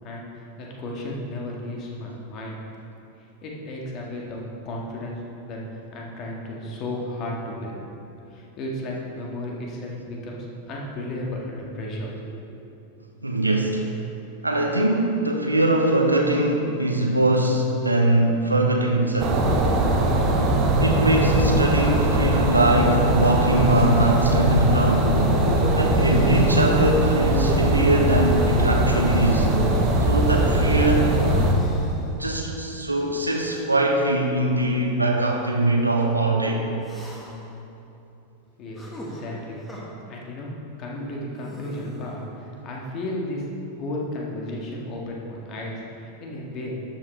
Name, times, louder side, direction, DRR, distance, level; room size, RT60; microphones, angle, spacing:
voice 1, 0.0-2.6 3.4-4.4 4.7-5.6 5.9-7.7 8.3-12.7 38.6-39.6 40.1-40.5 40.8-43.4 43.7-46.7, left 1 dB, 35° left, -2 dB, 1.8 m, -34 dB
voice 2, 13.2-13.9 14.4-19.4 20.8-25.2 25.7-29.5 30.1-31.2 32.1-36.7, right 1 dB, 85° right, 1 dB, 0.9 m, -22 dB
sound 1, 19.2-31.5, right 1 dB, 30° right, 1.3 m, -20 dB
sound 2, 24.0-24.5 25.7-27.3 28.4-30.7 31.5-32.1 33.2-33.7 34.6-34.7 36.8-37.5 38.8-39.8 41.4-42.2, equal, 10° left, 1.6 m, -40 dB
12.0 x 7.6 x 3.3 m, 2.8 s
figure-of-eight pair, 90°, 0 cm